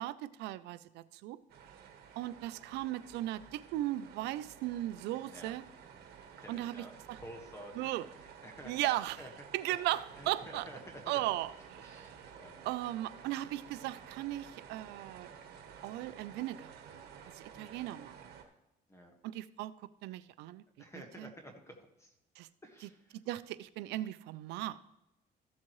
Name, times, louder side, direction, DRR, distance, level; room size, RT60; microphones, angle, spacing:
voice 1, 0.0-1.4 2.2-5.6 6.5-7.2 7.8-8.0 8.7-9.2 9.5-10.7 11.1-11.5 11.9-12.1 12.6-15.3 15.8-17.1 17.6-18.1 19.3-19.7 20.0-20.6 21.2-21.3 22.4-22.5 23.3-24.8, right 15 dB, 85° right, 16 dB, 0.5 m, -37 dB
sound 1, 1.5-18.4, right 7 dB, 70° right, 1.4 m, -53 dB
voice 2, 6.4-8.1 8.4-9.3 9.7-9.8 10.2-11.2 11.8-12.7 17.5-17.8 18.9-19.1 20.8-22.1 22.6-23.2, equal, 15° left, 3 dB, 1.6 m, -51 dB
14.0 x 7.3 x 3.1 m, 0.90 s
cardioid pair, 110°, 17 cm